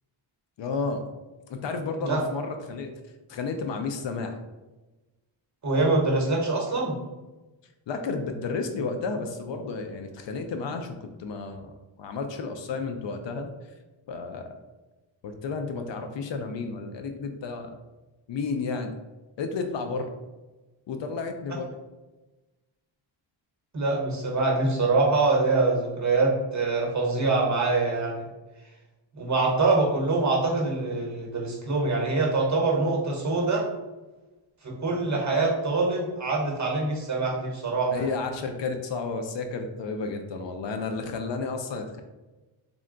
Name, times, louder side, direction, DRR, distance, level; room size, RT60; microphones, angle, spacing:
voice 1, 0.6-1.0 1.5-2.9 3.3-4.4 7.9-11.7 12.0-13.5 14.1-14.5 15.2-17.7 18.3-18.9 19.4-20.1 20.9-21.7 37.9-42.0, left 4 dB, 65° left, 6 dB, 0.5 m, -32 dB
voice 2, 5.6-6.9 23.7-28.3 29.2-33.6 34.6-38.1, right 3 dB, 35° right, -2 dB, 1.0 m, -24 dB
3.6 x 2.2 x 3.7 m, 1.1 s
wide cardioid pair, 115°, 48 cm